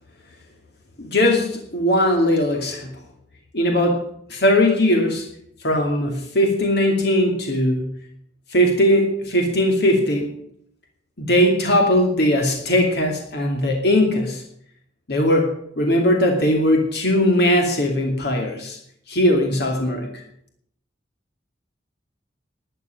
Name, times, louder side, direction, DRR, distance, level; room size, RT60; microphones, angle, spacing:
voice 1, 1.0-2.9 3.5-4.0 4.3-5.2 5.6-7.9 8.5-10.3 11.2-14.4 15.1-18.8 19.1-20.1, left 1 dB, 65° left, 2 dB, 2.5 m, -19 dB
12.5 x 8.1 x 9.4 m, 0.69 s
head